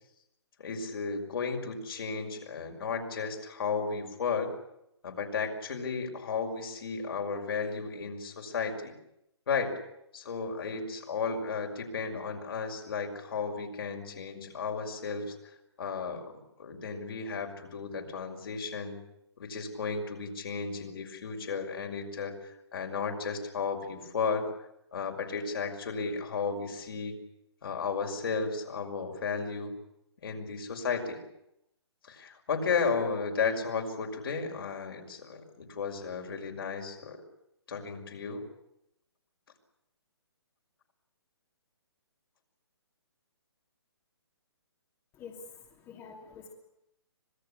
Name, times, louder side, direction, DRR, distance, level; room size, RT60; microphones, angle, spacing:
voice 1, 0.6-4.5 5.0-8.9 9.5-9.7 10.1-15.4 15.8-19.0 19.4-24.5 24.9-27.2 27.6-29.7 30.2-31.2 32.1-37.2 37.7-38.4, left 5 dB, 60° left, 2 dB, 5.9 m, -34 dB
voice 2, 45.1-46.5, left 5 dB, 20° left, 1 dB, 2.7 m, -47 dB
26.0 x 19.5 x 8.7 m, 0.82 s
figure-of-eight pair, 135°, 14 cm